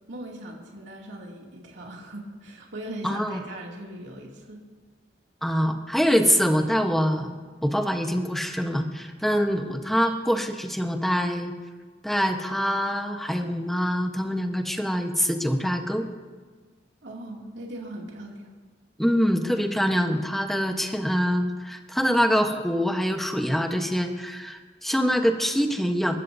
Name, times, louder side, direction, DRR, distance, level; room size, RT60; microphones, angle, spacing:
voice 1, 0.0-4.6 17.0-18.5, right 1 dB, 75° right, -2 dB, 2.6 m, -39 dB
voice 2, 3.0-3.4 5.4-11.5 12.0-16.1 19.0-26.2, equal, ahead, 4 dB, 1.0 m, -24 dB
27.5 x 14.0 x 2.7 m, 1.5 s
head